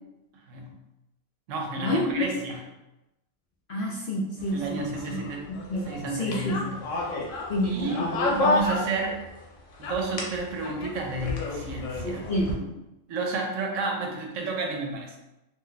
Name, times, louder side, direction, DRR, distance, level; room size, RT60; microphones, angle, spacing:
voice 1, 0.5-0.8 1.5-2.6 4.5-5.5 5.9-7.1 7.6-9.3 9.8-12.2 13.1-15.2, right 3 dB, 80° right, 1 dB, 1.0 m, -31 dB
voice 2, 3.7-5.2 5.5-6.7 7.5-8.3 12.0-12.7, equal, 60° left, -4 dB, 0.6 m, -29 dB
sound 1, 4.4-9.4 9.7-12.5, left 2 dB, 80° left, 1.0 m, -31 dB
2.6 x 2.1 x 3.8 m, 0.96 s
omnidirectional pair, 1.3 m